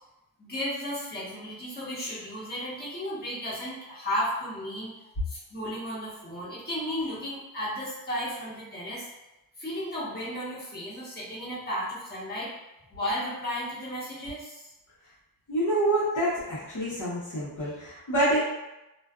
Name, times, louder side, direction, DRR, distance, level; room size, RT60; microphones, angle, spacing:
voice 1, 0.4-9.1 9.6-12.5 12.9-14.7, equal, 25° left, -9 dB, 1.1 m, -34 dB
voice 2, 15.5-18.4, right 1 dB, 55° left, -9 dB, 0.9 m, -27 dB
2.4 x 2.3 x 2.4 m, 0.96 s
cardioid pair, 80°, 36 cm